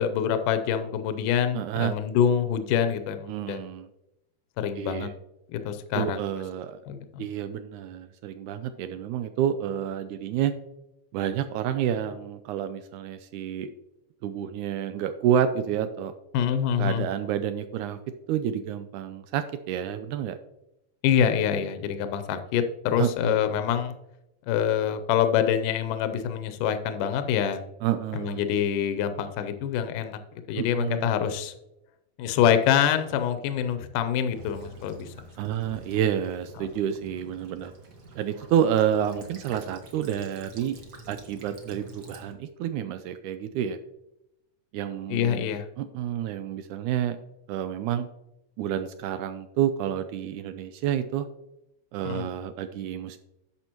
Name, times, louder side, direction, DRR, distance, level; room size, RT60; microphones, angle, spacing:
voice 1, 0.0-3.6 4.6-5.1 5.5-6.2 6.9-7.2 16.3-17.1 21.0-23.9 24.5-27.6 28.1-30.2 30.5-31.5 32.2-35.1 36.6-36.7 45.1-45.7 52.0-52.3, left 9 dB, 75° left, 8 dB, 2.2 m, -25 dB
voice 2, 1.5-1.9 3.3-3.9 4.8-5.1 6.0-6.8 7.2-10.5 11.1-13.7 14.2-16.1 16.8-18.0 18.3-20.4 23.0-23.6 27.8-28.4 30.6-31.1 35.4-37.7 38.2-40.8 41.1-43.8 44.7-47.2 47.5-48.1 48.6-51.3 51.9-53.2, right 9 dB, 85° right, 10 dB, 1.8 m, -29 dB
Child speech kid speaking / Bird vocalization bird call bird song / Stream, 34.3-42.3, right 1 dB, 55° right, 1.1 m, -47 dB
11.0 x 7.1 x 3.0 m, 0.88 s
omnidirectional pair, 3.9 m